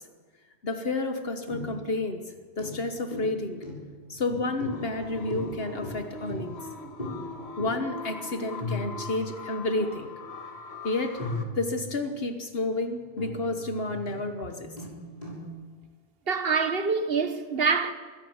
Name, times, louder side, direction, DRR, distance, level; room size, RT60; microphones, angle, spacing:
voice 1, 0.6-3.6 4.1-6.5 7.6-10.1 10.8-11.2 11.5-14.7, left 2 dB, 65° left, 1.5 m, -30 dB
sound 1, 1.5-2.0 2.2-2.3 2.6-6.7 7.0-7.3 7.6-7.9 8.2-8.3 8.6-9.5 10.2-10.3 11.2-12.1 12.5-15.5, left 1 dB, 40° left, 6.8 m, -37 dB
sound 2, 4.6-11.4, left 3 dB, 85° left, 1.9 m, -42 dB
voice 2, 16.3-17.9, right 5 dB, 65° right, 1.5 m, -25 dB
23.5 x 17.0 x 7.2 m
omnidirectional pair, 1.1 m